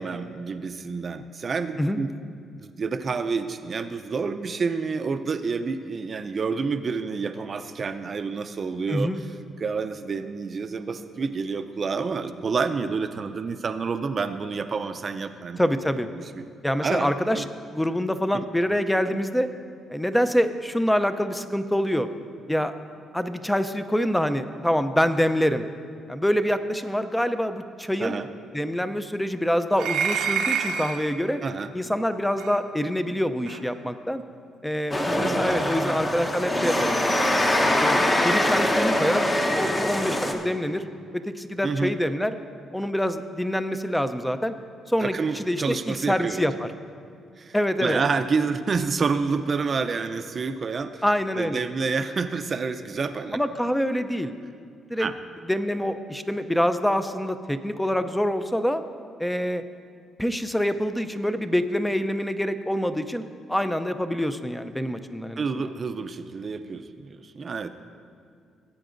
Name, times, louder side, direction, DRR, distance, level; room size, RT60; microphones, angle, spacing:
voice 1, 0.0-2.1 2.5-9.1 9.6-15.6 16.1-16.5 16.8-17.5 18.3-18.4 28.0-28.3 31.4-31.7 35.1-36.0 41.6-41.9 45.0-46.5 47.4-47.6 47.8-51.0 51.3-53.4 55.0-55.1 65.4-67.7, right 5 dB, 40° right, 10 dB, 0.5 m, -29 dB
voice 2, 8.9-9.2 15.6-16.1 16.6-17.4 17.7-19.5 19.9-22.1 22.5-22.7 23.1-25.6 26.1-28.2 28.5-31.4 31.7-34.2 34.6-37.0 37.4-38.0 38.2-39.3 39.5-40.8 41.1-42.3 42.7-44.5 44.9-46.7 47.5-48.0 51.0-51.6 53.3-54.4 54.9-55.1 55.5-58.8 59.2-59.6 60.2-63.2 63.5-65.7, equal, 5° left, 10 dB, 0.5 m, -25 dB
sound 1, 29.8-31.1 32.4-32.5 33.5-33.6, right 6 dB, 85° right, 0.7 m, -27 dB
sound 2, 34.9-40.3, left 1 dB, 20° left, 1.0 m, -23 dB
18.5 x 8.6 x 2.6 m, 2.3 s
cardioid pair, 90°, 0 cm